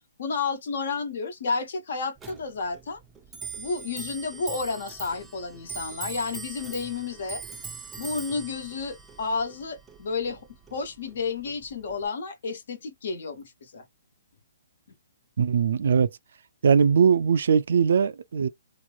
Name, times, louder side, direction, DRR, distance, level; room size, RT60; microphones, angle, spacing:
voice 1, 0.2-3.0 3.6-7.4 8.0-13.8, left 4 dB, 60° left, 1.1 m, -31 dB
Clock, 2.2-12.1, right 5 dB, 10° right, 0.5 m, -42 dB
voice 2, 15.4-16.1 16.6-18.5, right 6 dB, 70° right, 0.4 m, -20 dB
2.9 x 2.0 x 2.4 m
hypercardioid pair, 155°, 0 cm